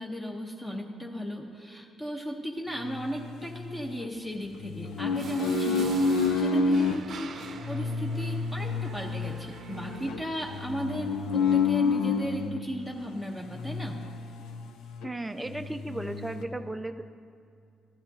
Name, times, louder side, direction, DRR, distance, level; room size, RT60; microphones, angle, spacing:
voice 1, 0.0-14.0, equal, 15° left, 0 dB, 0.9 m, -36 dB
sound 1, 2.9-4.1 4.6-7.0 7.6-12.6 13.5-14.7 15.0-15.1 15.5-16.4, left 4 dB, 85° left, 0.5 m, -29 dB
sound 2, 5.1-10.6, right 5 dB, 60° right, 0.6 m, -45 dB
voice 2, 15.0-17.0, right 2 dB, 10° right, 8 dB, 0.4 m, -35 dB
13.0 x 11.5 x 2.7 m, 2.5 s
cardioid pair, 90°, 0 cm